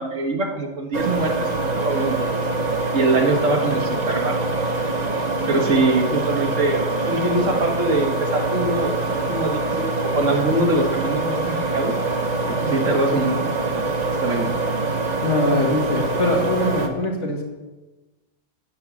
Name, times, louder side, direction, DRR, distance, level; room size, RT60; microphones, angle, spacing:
voice 1, 0.0-2.4 2.9-4.5 5.5-11.9 12.5-13.4 13.7-13.8 14.2-14.5, right 2 dB, 85° right, 3 dB, 1.9 m, -23 dB
sound 1, 0.9-16.9, right 3 dB, 35° right, 1.1 m, -24 dB
voice 2, 15.2-17.4, left 1 dB, 70° left, 0 dB, 2.4 m, -22 dB
9.4 x 8.0 x 8.4 m, 1.1 s
omnidirectional pair, 1.3 m